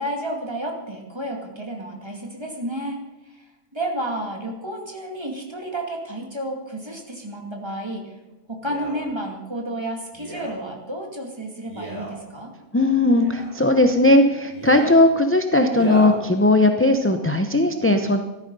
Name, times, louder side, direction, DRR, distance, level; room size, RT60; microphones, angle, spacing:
voice 1, 0.0-8.2 8.5-12.5, right 1 dB, 20° right, 2 dB, 2.3 m, -31 dB
Male speech man speaking, 8.6-9.0 10.1-10.6 11.7-12.2 13.1-13.5 14.5-15.0 15.7-16.2 16.9-17.0, right 1 dB, 30° left, 5.7 m, -33 dB
voice 2, 12.7-18.2, left 2 dB, 15° left, 6 dB, 0.5 m, -18 dB
14.5 x 13.0 x 5.4 m, 1.1 s
omnidirectional pair, 1.5 m